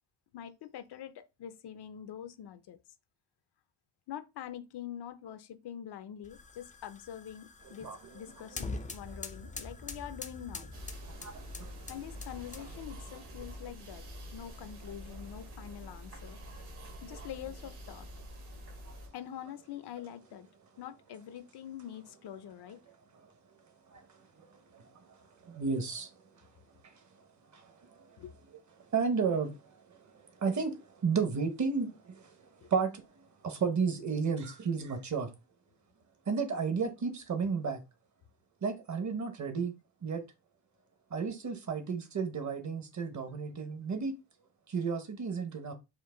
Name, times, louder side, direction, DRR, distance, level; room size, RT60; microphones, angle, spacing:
voice 1, 0.3-2.8 4.1-10.7 11.9-14.1 14.3-16.6 17.0-18.1 19.1-20.5 20.8-22.8 28.2-28.3 32.6-32.7, left 10 dB, 70° left, 0.6 m, -45 dB
sound 1, 6.2-12.9, left 3 dB, 20° left, 0.3 m, -44 dB
sound 2, 10.7-19.1, equal, 65° right, 1.5 m, -47 dB
voice 2, 11.1-11.7 16.8-17.0 18.9-19.0 23.9-24.1 24.4-24.9 25.4-26.1 26.8-26.9 27.5-27.7 28.1-28.2 28.9-32.4 32.7-33.0 33.4-35.3 36.3-37.8 38.6-39.7 40.0-40.2 41.1-44.1 44.7-45.7, right 5 dB, 45° right, 0.9 m, -33 dB
4.5 x 2.5 x 3.7 m
wide cardioid pair, 160°, 42 cm